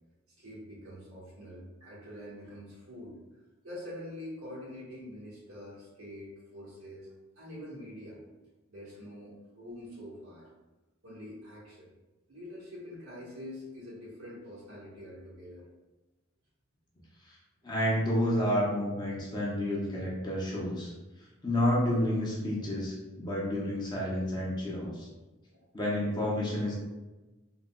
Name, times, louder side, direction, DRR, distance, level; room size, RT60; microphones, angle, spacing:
voice 1, 0.4-3.2 3.6-8.2 8.7-10.5 11.0-11.9 12.3-15.6 25.5-25.6, left 1 dB, 85° right, -6 dB, 1.2 m, -45 dB
voice 2, 17.6-20.9 21.4-25.1 25.7-26.7, left 1 dB, 20° left, -4 dB, 0.6 m, -30 dB
3.7 x 2.1 x 2.2 m, 1.1 s
head